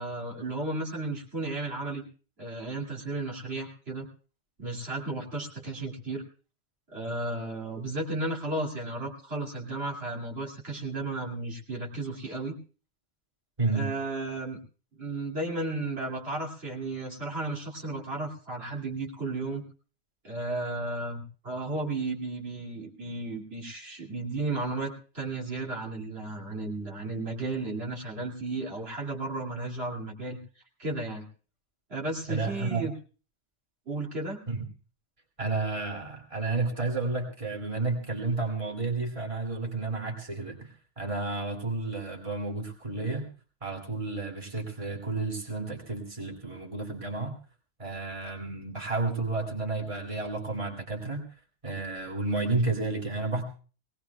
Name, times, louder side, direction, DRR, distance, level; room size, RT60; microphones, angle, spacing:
voice 1, 0.0-2.0 2.4-4.1 4.6-6.2 6.9-12.5 13.7-14.6 15.0-19.6 20.2-30.4 30.8-31.3 31.9-32.9 33.9-34.4, right 2 dB, 60° right, -2 dB, 2.8 m, -34 dB
voice 2, 32.3-32.9 34.5-34.6 35.4-43.3 43.6-47.4 47.8-51.3 51.6-53.4, right 3 dB, 25° right, 1 dB, 2.6 m, -31 dB
22.0 x 18.5 x 2.3 m, 0.37 s
omnidirectional pair, 1.2 m